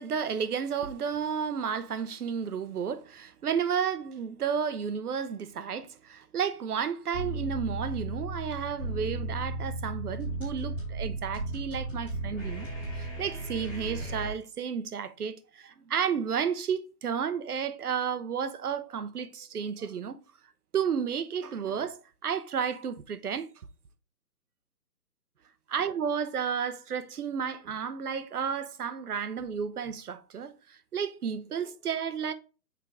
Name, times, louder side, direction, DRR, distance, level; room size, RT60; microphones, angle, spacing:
voice 1, 0.0-12.7 12.9-20.2 20.7-23.5 25.7-32.3, right 7 dB, 65° right, 0.8 m, -32 dB
sound 1, 7.1-14.3, right 2 dB, 5° right, 1.2 m, -35 dB
6.0 x 4.6 x 3.6 m
hypercardioid pair, 175°, 50 cm